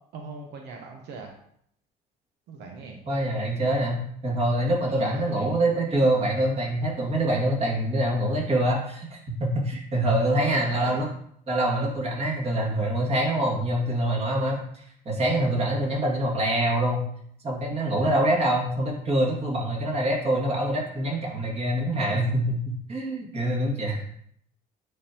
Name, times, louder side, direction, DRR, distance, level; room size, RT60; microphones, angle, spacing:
voice 1, 0.1-1.4 2.5-3.0 4.9-5.6 10.3-11.0, right 4 dB, 85° right, 1 dB, 1.0 m, -40 dB
voice 2, 3.1-11.1 11.5-17.0 17.4-24.0, right 1 dB, 35° right, -2 dB, 2.1 m, -25 dB
9.4 x 3.9 x 2.9 m, 0.68 s
cardioid pair, 110°, 17 cm